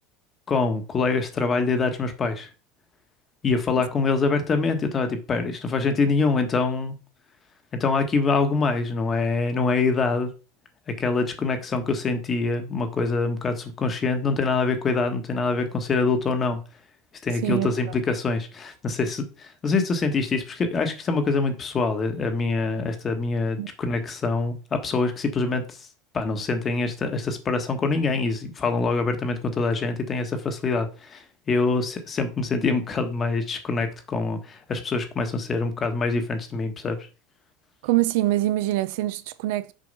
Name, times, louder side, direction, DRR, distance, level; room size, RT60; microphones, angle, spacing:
voice 1, 0.5-2.5 3.4-7.0 7.7-10.3 11.0-16.6 17.2-25.9 26.1-37.0, left 4 dB, 25° left, 1.2 m, -25 dB
voice 2, 37.8-39.7, right 16 dB, 75° right, 0.5 m, -24 dB
6.4 x 4.6 x 5.4 m
supercardioid pair, 155°, 0 cm